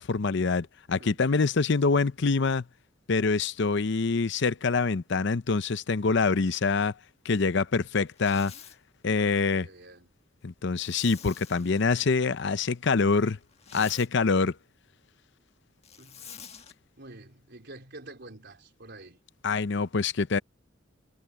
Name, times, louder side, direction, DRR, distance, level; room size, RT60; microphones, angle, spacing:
voice 1, 0.0-2.6 3.1-6.9 7.2-8.5 9.0-9.7 10.4-13.4 13.7-14.6 19.4-20.4, left 4 dB, 65° left, 0.7 m, -25 dB
voice 2, 0.9-1.2 9.2-10.1 16.0-16.6 17.0-19.2, right 2 dB, 60° right, 4.4 m, -48 dB
Zipper (clothing), 8.1-8.8 10.8-12.1 13.4-14.1 15.8-16.7, left 8 dB, 35° left, 1.5 m, -47 dB
head